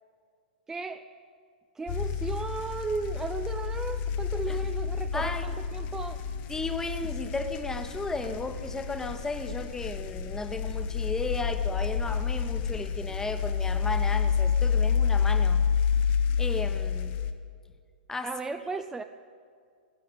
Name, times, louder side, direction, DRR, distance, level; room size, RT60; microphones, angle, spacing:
voice 1, 0.7-1.1 1.8-6.2 18.2-19.0, right 3 dB, 10° right, 7 dB, 0.5 m, -35 dB
sound 1, 1.9-17.3, left 6 dB, 40° left, 1.0 m, -29 dB
voice 2, 5.1-5.6 6.5-15.7 16.4-17.2 18.1-18.3, left 3 dB, 10° left, 8 dB, 1.1 m, -34 dB
15.0 x 11.0 x 7.7 m, 2.1 s
hypercardioid pair, 115°, 5 cm